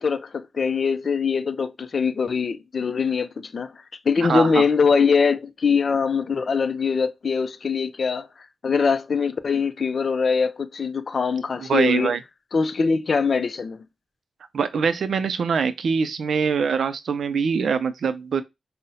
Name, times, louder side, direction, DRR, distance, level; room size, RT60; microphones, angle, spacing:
voice 1, 0.0-3.7 4.1-8.3 8.6-12.1 12.5-13.8, left 5 dB, 60° left, 0.4 m, -22 dB
voice 2, 4.2-4.6 11.6-12.2 14.5-18.4, right 6 dB, 80° right, 0.4 m, -23 dB
5.5 x 2.1 x 2.6 m
cardioid pair, 75°, 0 cm